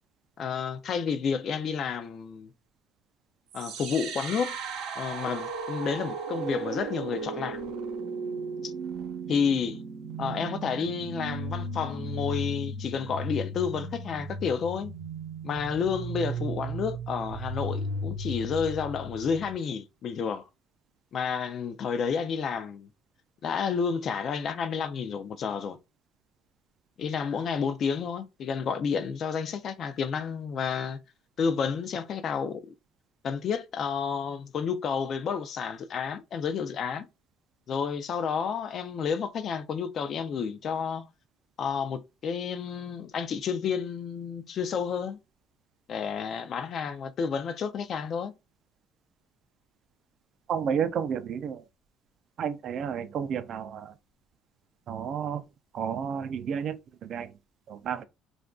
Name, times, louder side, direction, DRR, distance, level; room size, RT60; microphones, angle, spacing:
voice 1, 0.4-2.5 3.5-4.5 5.0-7.6 8.6-8.7 9.3-9.8 10.2-14.9 15.4-20.4 21.1-22.9 23.4-25.8 27.0-31.0 31.4-32.7 33.2-37.0 37.7-41.1 41.6-45.2 45.9-48.3, left 6 dB, 40° left, 0.3 m, -30 dB
sound 1, 3.5-19.5, right 3 dB, 80° right, 0.7 m, -35 dB
voice 2, 50.5-51.6 52.4-53.9 54.9-55.4 55.7-56.8 57.1-57.3 57.7-58.1, right 7 dB, 45° right, 0.3 m, -31 dB
2.4 x 2.2 x 3.5 m
cardioid pair, 150°, 0 cm